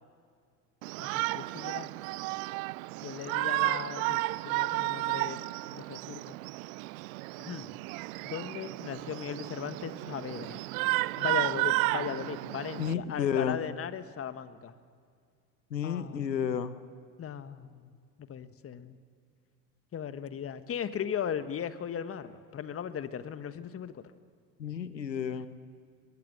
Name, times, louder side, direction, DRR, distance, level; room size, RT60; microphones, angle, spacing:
Shout, 0.8-12.9, right 22 dB, 55° right, 0.6 m, -33 dB
voice 1, 1.0-1.9 3.0-5.5 5.7-6.4 7.4-7.7 8.2-10.6 11.2-14.7 15.8-16.4 17.2-17.9 18.2-19.0 19.9-24.0, left 8 dB, 25° left, 12 dB, 1.3 m, -38 dB
voice 2, 12.8-13.6 15.7-16.7 24.6-25.5, left 8 dB, 90° left, 13 dB, 1.2 m, -31 dB
22.5 x 22.5 x 6.6 m, 2.2 s
hypercardioid pair, 75°, 50 cm